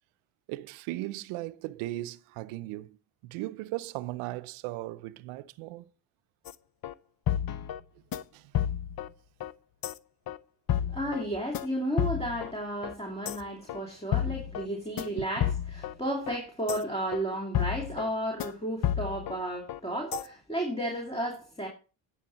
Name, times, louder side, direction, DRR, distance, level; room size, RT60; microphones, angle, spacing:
voice 1, 0.5-3.0 3.2-5.9 8.3-8.5 15.2-15.3, right 17 dB, 90° right, 0.7 m, -37 dB
sound 1, 6.4-6.5 6.8-6.9 7.3-7.8 8.1-8.2 8.5-9.1 9.4-9.5 9.8-9.9 10.3-10.4 10.7-11.2 11.5-11.7 12.0-12.5 12.8-12.9 13.2-13.4 13.7-13.8 14.1-14.7 15.0-15.1 15.4-15.9 16.3-16.4 16.7-16.8 17.1-17.2 17.5-18.1 18.4-18.5 18.8-19.4 19.7-19.8 20.1-20.2, left 10 dB, 45° left, 0.7 m, -30 dB
voice 2, 10.9-21.7, right 1 dB, 10° left, 2.8 m, -33 dB
9.9 x 7.9 x 4.1 m
supercardioid pair, 80°, 49 cm